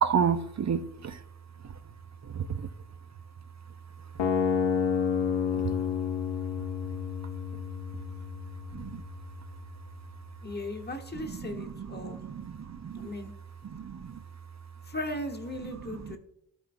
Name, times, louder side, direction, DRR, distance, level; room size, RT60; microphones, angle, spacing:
voice 1, 0.0-1.2 1.6-1.7 2.2-2.7 5.5-5.7 6.6-6.7 8.7-9.0 11.1-13.1 13.6-14.2 15.6-16.2, right 7 dB, 40° right, 12 dB, 0.6 m, -32 dB
sound 1, 4.2-10.2, left 7 dB, 70° left, 0.8 m, -31 dB
voice 2, 10.4-12.2 12.9-13.3 14.8-16.2, left 1 dB, 20° left, 3 dB, 1.2 m, -37 dB
12.5 x 4.6 x 2.6 m, 0.77 s
cardioid pair, 50°, 45 cm